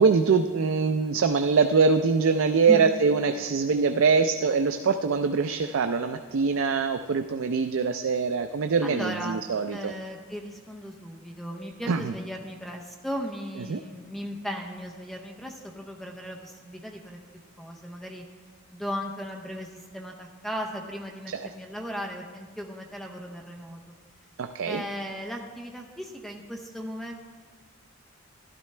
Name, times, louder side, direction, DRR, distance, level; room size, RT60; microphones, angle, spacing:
voice 1, 0.0-9.9 11.9-12.1 13.7-13.8 21.3-21.5 24.4-24.8, right 5 dB, 65° right, 8 dB, 0.4 m, -23 dB
voice 2, 8.8-9.4 9.7-17.2 17.6-18.2 18.7-23.9 24.6-27.1, equal, ahead, 1 dB, 0.6 m, -36 dB
12.5 x 11.5 x 3.3 m, 1.5 s
head